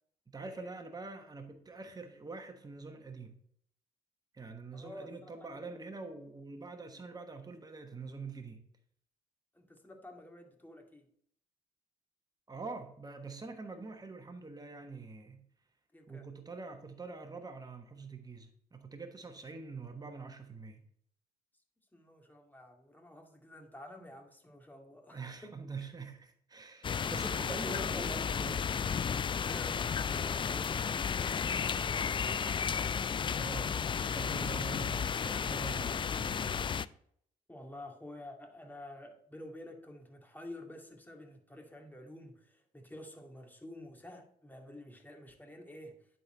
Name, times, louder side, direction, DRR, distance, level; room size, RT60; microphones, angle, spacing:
voice 1, 0.3-3.4 4.3-8.6 12.5-15.5 16.1-20.8 25.1-28.7 33.4-33.8 34.1-36.7, right 4 dB, 20° right, 1.2 m, -45 dB
voice 2, 4.7-5.8 9.5-11.1 15.9-16.3 21.9-25.5 27.4-28.2 29.4-32.5 37.5-46.1, left 1 dB, 10° left, 2.1 m, -49 dB
sound 1, 26.8-36.9, left 7 dB, 25° left, 0.3 m, -33 dB
10.5 x 4.2 x 4.3 m
hypercardioid pair, 50°, 18 cm